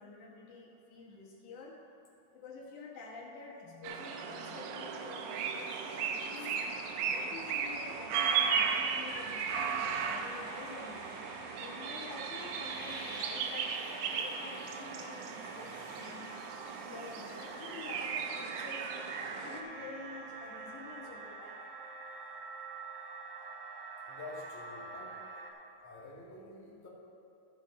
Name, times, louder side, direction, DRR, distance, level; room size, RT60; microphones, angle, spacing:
voice 1, 0.0-1.8 2.3-6.6 7.1-11.1 11.6-16.4 16.8-21.6, left 3 dB, 75° left, -2 dB, 2.7 m, -48 dB
sound 1, 3.8-19.6, right 6 dB, 85° right, 2.1 m, -36 dB
sound 2, 4.7-21.0, right 2 dB, 35° right, 1.3 m, -50 dB
sound 3, 9.8-25.5, right 3 dB, 65° right, 1.7 m, -48 dB
voice 2, 24.1-25.3 25.8-26.9, left 2 dB, 5° left, -8 dB, 1.5 m, -48 dB
14.5 x 6.5 x 4.1 m, 2.6 s
omnidirectional pair, 3.5 m